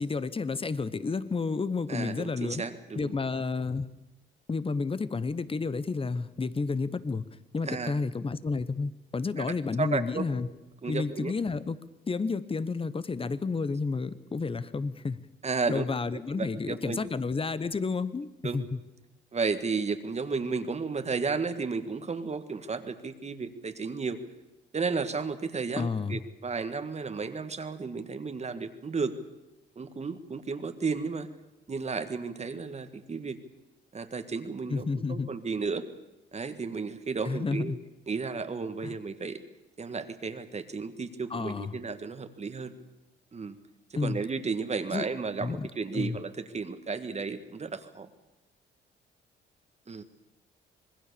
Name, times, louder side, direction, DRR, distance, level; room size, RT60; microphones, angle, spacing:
voice 1, 0.0-2.6 2.9-3.9 4.5-7.2 7.5-10.5 10.8-11.8 12.1-15.2 15.7-18.8 25.8-26.2 34.7-35.3 37.2-37.8 38.8-39.0 41.3-41.8 44.0-44.2 44.9-45.0 45.4-45.7 45.9-46.2, left 4 dB, 25° left, 15 dB, 1.2 m, -31 dB
voice 2, 1.9-3.1 7.7-8.0 9.4-9.5 9.8-10.3 10.8-11.3 15.4-15.8 16.4-17.0 18.4-18.7 19.3-24.2 24.7-29.1 29.7-31.3 31.7-33.4 33.9-35.8 36.3-37.7 38.1-39.4 39.8-42.7 43.3-43.6 44.0-48.1 49.9-50.0, right 4 dB, 35° right, 9 dB, 1.8 m, -33 dB
26.0 x 20.0 x 7.0 m, 1.0 s
cardioid pair, 90°, 20 cm